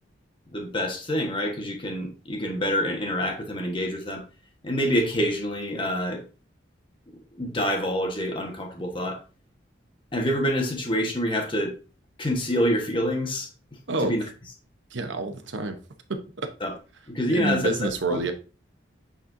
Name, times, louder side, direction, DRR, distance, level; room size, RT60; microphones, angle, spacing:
voice 1, 0.5-4.2 4.6-6.2 7.3-9.2 10.1-11.7 12.2-13.5 14.0-14.2 16.6-16.7 17.1-17.7 18.1-18.2, equal, 25° left, 1.4 m, -26 dB
voice 2, 14.9-15.8 16.1-16.5 17.3-18.3, right 2 dB, 80° right, 1.0 m, -28 dB
8.9 x 4.2 x 2.7 m
head